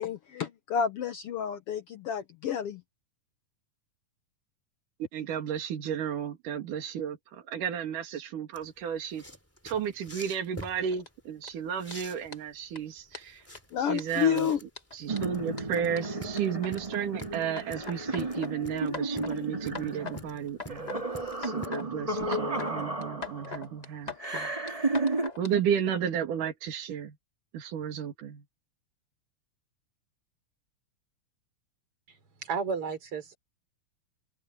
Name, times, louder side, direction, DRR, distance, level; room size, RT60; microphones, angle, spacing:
voice 1, 0.0-2.8 13.7-14.6, left 8 dB, 75° left, 1.3 m, -30 dB
voice 2, 5.1-9.2 9.6-13.4 13.8-21.1 21.4-24.5 25.4-27.2 27.5-28.4, right 8 dB, 75° right, 3.7 m, -33 dB
sound 1, 8.5-21.7, equal, 5° left, 3.2 m, -47 dB
sound 2, 10.6-11.1 11.4-11.5 11.9-12.0 12.3-12.4 12.7-12.8 13.1-13.6 13.9-17.2 17.6-18.5 18.9-19.4 19.7-20.2 20.5-21.0 21.3-21.9 22.2-22.7 23.0-25.5, left 4 dB, 25° left, 0.8 m, -41 dB
sound 3, 15.1-23.6 24.2-25.3, right 2 dB, 15° right, 1.8 m, -33 dB
voice 3, 32.1-33.4, right 5 dB, 45° right, 4.7 m, -33 dB
open air
omnidirectional pair, 3.8 m